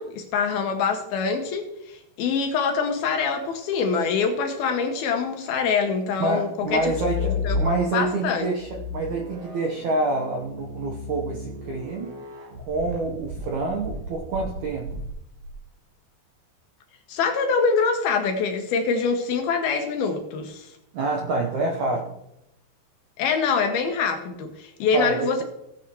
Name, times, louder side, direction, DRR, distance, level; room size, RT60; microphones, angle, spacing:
voice 1, 0.0-6.9 7.3-8.5 17.1-20.7 23.2-25.4, left 5 dB, 70° left, 5 dB, 2.6 m, -25 dB
voice 2, 6.2-12.2 12.7-14.9 20.9-22.1 24.9-25.4, right 2 dB, 75° right, 1 dB, 1.7 m, -27 dB
sound 1, 6.7-8.1 8.6-15.5, left 3 dB, 55° right, 2.8 m, -33 dB
16.5 x 9.0 x 3.0 m, 0.84 s
omnidirectional pair, 5.0 m